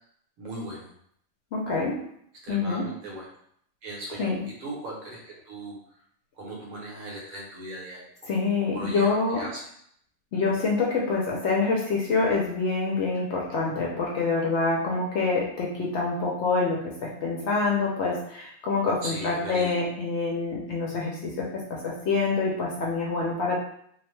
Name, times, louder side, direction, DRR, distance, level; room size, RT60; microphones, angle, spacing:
voice 1, 0.4-0.9 2.4-3.3 3.8-4.3 4.6-5.8 6.4-8.0 8.4-9.6 19.0-19.7, right 1 dB, 80° right, -3 dB, 1.3 m, -38 dB
voice 2, 1.5-2.0 2.5-2.9 4.2-4.4 8.3-9.4 10.3-23.6, left 4 dB, 65° left, -3 dB, 0.7 m, -26 dB
2.7 x 2.1 x 3.0 m, 0.69 s
omnidirectional pair, 1.5 m